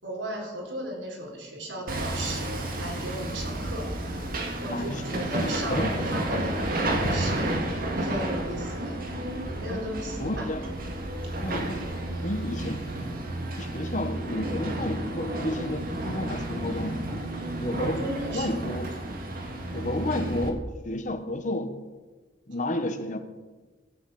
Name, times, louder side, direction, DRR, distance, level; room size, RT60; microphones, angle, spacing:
voice 1, 0.0-3.9 4.6-7.7 8.0-8.9 9.6-10.5 17.8-18.7, right 1 dB, 85° right, 0 dB, 3.9 m, -36 dB
Hammer, 1.9-20.5, right 1 dB, 50° right, 1.8 m, -31 dB
voice 2, 4.7-5.2 5.7-5.9 9.7-9.8 10.2-10.6 11.4-11.8 12.2-12.8 13.6-16.9 17.6-18.9 19.7-20.6 20.8-21.7 22.5-23.2, left 1 dB, 45° left, 8 dB, 1.2 m, -31 dB
14.0 x 7.3 x 7.8 m, 1.3 s
head